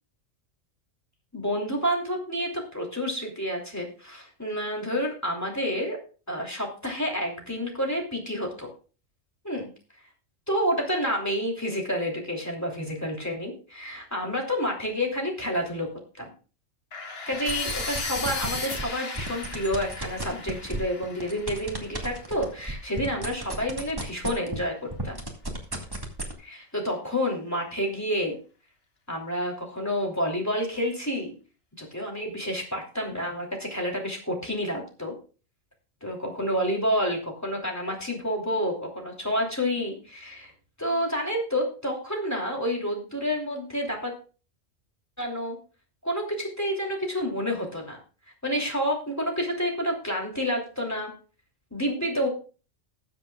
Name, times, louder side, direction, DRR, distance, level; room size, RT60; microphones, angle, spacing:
voice 1, 1.3-6.0 6.3-8.7 9.4-9.7 10.5-15.9 16.2-16.3 17.3-24.8 25.0-25.2 26.4-28.4 29.1-31.3 31.8-35.1 36.0-40.5 40.8-44.1 45.2-45.6 46.0-48.0 48.4-51.1 51.7-52.3, equal, 10° left, -1 dB, 3.0 m, -29 dB
sound 1, 16.9-22.8, left 3 dB, 50° left, 1.7 m, -36 dB
sound 2, 17.3-18.8 19.1-24.6 24.9-26.3, right 1 dB, 20° right, 1.9 m, -33 dB
20.0 x 7.5 x 2.3 m, 0.35 s
omnidirectional pair, 1.3 m